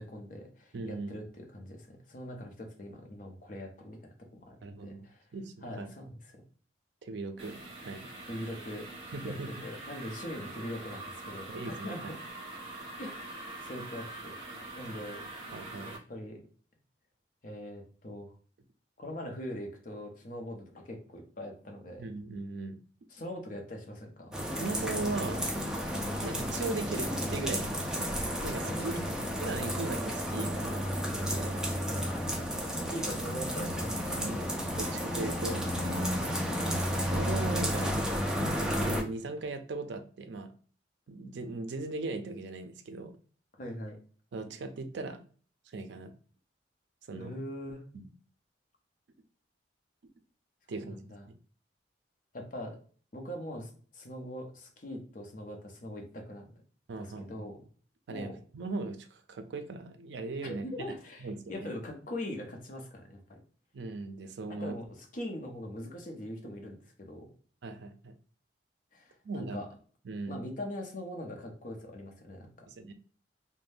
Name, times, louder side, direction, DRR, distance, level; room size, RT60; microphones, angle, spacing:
voice 1, 0.0-4.0 4.4-5.2 5.6-6.4 8.3-9.1 9.6-12.0 13.0-14.4 14.8-15.2 16.1-16.4 17.4-18.3 19.0-22.0 23.1-24.4 28.6-29.2 32.7-34.7 36.1-36.8 43.6-44.0 47.2-47.8 50.7-51.2 52.3-52.8 53.1-56.5 57.0-57.6 58.1-58.4 60.4-63.4 64.6-67.2 68.9-69.7 70.3-72.7, left 1 dB, 45° left, 2 dB, 0.6 m, -42 dB
voice 2, 0.7-1.1 4.6-5.1 5.3-5.9 7.0-8.1 9.1-9.5 11.5-11.9 15.5-15.9 22.0-22.8 24.6-25.4 26.2-28.1 28.4-28.9 29.4-30.9 31.1-31.6 34.1-34.4 34.8-36.1 37.0-38.1 38.6-40.5 41.1-43.1 44.3-45.2 45.7-46.1 47.1-47.4 47.9-48.1 50.7-51.4 56.9-57.5 58.1-60.9 61.2-61.7 63.7-64.7 67.6-68.1 69.2-69.6 70.0-70.4 72.7-72.9, right 3 dB, 70° right, 7 dB, 0.4 m, -38 dB
sound 1, 7.4-16.0, right 2 dB, 30° right, 1.1 m, -44 dB
sound 2, 24.3-39.0, equal, 5° right, 0.3 m, -32 dB
2.6 x 2.1 x 3.3 m, 0.44 s
head